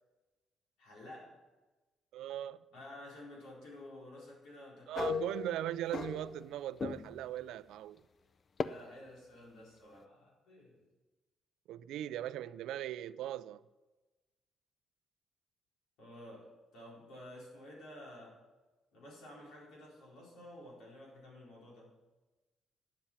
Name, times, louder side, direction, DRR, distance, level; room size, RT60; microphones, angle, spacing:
voice 1, 0.8-1.4 2.7-5.3 8.6-10.8 16.0-18.4 18.9-21.9, left 1 dB, 90° left, 4.2 m, -52 dB
voice 2, 2.1-2.6 4.9-8.0 11.7-13.6, right 12 dB, 85° right, 0.4 m, -39 dB
sound 1, 5.0-6.5 6.8-7.3 8.6-8.7, left 5 dB, 45° left, 0.5 m, -37 dB
9.7 x 7.5 x 7.2 m
cardioid pair, 90°, 0 cm